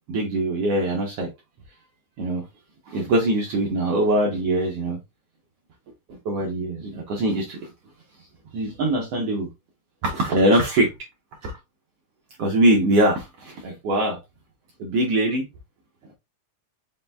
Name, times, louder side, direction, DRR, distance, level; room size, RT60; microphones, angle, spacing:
voice 1, 0.1-1.3 2.2-2.4 2.9-5.0 6.2-7.7 8.5-9.5 10.0-10.9 11.4-11.5 12.4-14.2 14.8-15.5, right 1 dB, 65° right, 1.6 m, -22 dB
5.3 x 3.7 x 2.3 m
omnidirectional pair, 3.9 m